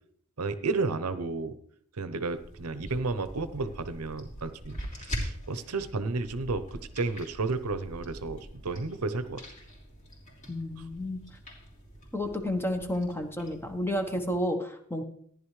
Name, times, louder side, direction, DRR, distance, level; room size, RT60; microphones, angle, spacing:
voice 1, 0.4-1.6 2.0-9.4, right 3 dB, 80° right, 11 dB, 0.8 m, -32 dB
sound 1, 2.3-14.4, equal, 35° left, 3.1 m, -43 dB
voice 2, 10.5-11.2 12.1-15.0, left 1 dB, 10° left, 6 dB, 1.0 m, -31 dB
14.5 x 10.5 x 3.2 m, 0.62 s
head